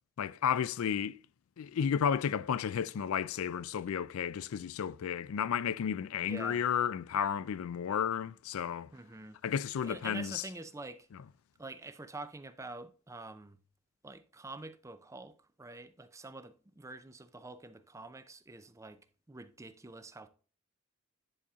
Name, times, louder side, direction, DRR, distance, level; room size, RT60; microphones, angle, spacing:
voice 1, 0.2-1.2 1.6-8.9 9.4-10.4, left 8 dB, 75° left, 0.4 m, -32 dB
voice 2, 6.2-6.6 8.9-9.4 9.8-11.1 11.6-13.6 14.0-19.0 19.3-20.3, right 2 dB, 15° right, 0.5 m, -47 dB
10.0 x 4.2 x 3.5 m
head